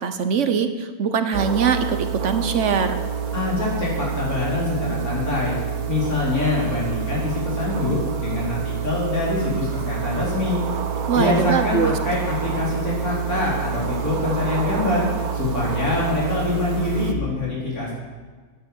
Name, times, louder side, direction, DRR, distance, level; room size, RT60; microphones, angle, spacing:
voice 1, 0.0-3.0 11.1-12.0, right 6 dB, 60° right, 9 dB, 1.1 m, -22 dB
sound 1, 1.3-17.1, right 7 dB, 90° right, 1.5 m, -27 dB
voice 2, 3.3-5.6 5.9-10.6 11.1-15.1 15.3-17.9, left 2 dB, 80° left, -6 dB, 4.7 m, -24 dB
10.5 x 10.0 x 7.9 m, 1.5 s
omnidirectional pair, 1.5 m